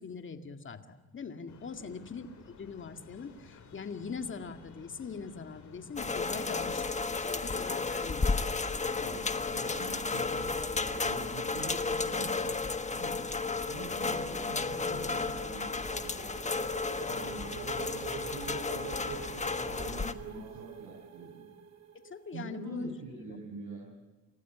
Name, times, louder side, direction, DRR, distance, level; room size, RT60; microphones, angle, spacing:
voice 1, 0.0-6.8 7.1-8.5 22.0-23.4, left 5 dB, 40° left, 7 dB, 2.1 m, -42 dB
sound 1, 1.5-20.3, left 5 dB, 70° left, 5.3 m, -55 dB
sound 2, 6.0-20.1, left 4 dB, 25° left, 1.3 m, -33 dB
voice 2, 6.2-6.6 9.0-9.2 9.5-12.6 12.9-13.2 13.7-16.2 17.1-21.4 22.3-23.9, right 4 dB, 75° right, -2 dB, 7.6 m, -45 dB
sound 3, 14.2-22.5, right 7 dB, 60° right, 2.5 m, -46 dB
29.0 x 14.5 x 9.7 m, 1.3 s
cardioid pair, 90°, 30 cm